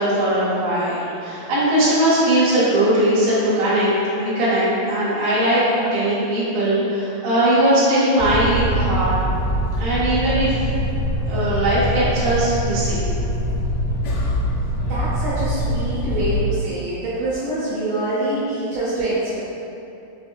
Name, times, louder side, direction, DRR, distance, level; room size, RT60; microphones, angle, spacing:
voice 1, 0.0-3.9 4.1-9.1 9.8-10.5 11.3-13.0, right 1 dB, 55° right, -12 dB, 1.4 m, -19 dB
sound 1, 8.2-16.5, equal, 80° left, 2.3 m, -23 dB
voice 2, 14.8-19.4, right 2 dB, 75° right, -10 dB, 2.1 m, -25 dB
5.7 x 2.6 x 2.6 m, 2.8 s
omnidirectional pair, 4.4 m